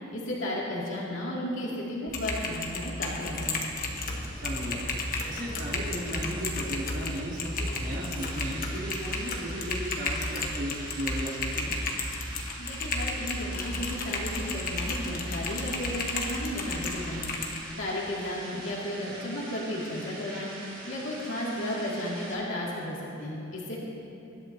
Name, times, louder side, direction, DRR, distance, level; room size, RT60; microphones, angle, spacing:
voice 1, 0.1-3.8 12.6-17.3 17.8-20.5 20.9-23.8, left 1 dB, 75° left, -5 dB, 2.6 m, -34 dB
Typing, 2.1-17.6, left 2 dB, 45° left, 1.3 m, -33 dB
sound 1, 3.6-22.3, right 1 dB, 25° right, 3.2 m, -44 dB
voice 2, 4.3-4.8 5.3-11.7, equal, 65° right, -9 dB, 3.6 m, -35 dB
24.0 x 12.0 x 2.9 m, 2.8 s
head